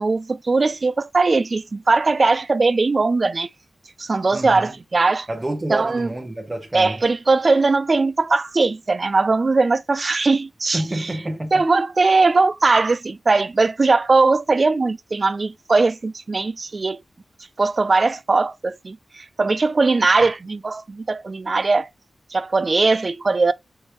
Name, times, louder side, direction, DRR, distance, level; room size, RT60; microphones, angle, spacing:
voice 1, 0.0-3.5 4.0-5.3 5.7-6.1 6.7-11.1 11.5-17.0 17.6-21.9 22.3-23.5, right 3 dB, 45° right, 0.3 m, -19 dB
voice 2, 4.3-4.8 5.3-7.0 10.7-11.6, right 1 dB, 25° right, 0.8 m, -28 dB
4.5 x 3.2 x 2.9 m
wide cardioid pair, 80°, 0 cm